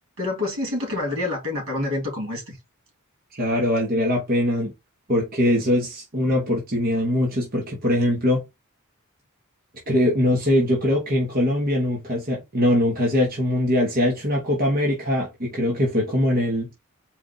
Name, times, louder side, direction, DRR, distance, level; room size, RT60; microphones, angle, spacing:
voice 1, 0.2-2.6, left 2 dB, 75° right, 2.9 m, -27 dB
voice 2, 3.3-4.7 5.1-8.4 9.9-16.7, left 1 dB, 45° right, 1.3 m, -22 dB
4.6 x 2.5 x 4.0 m
head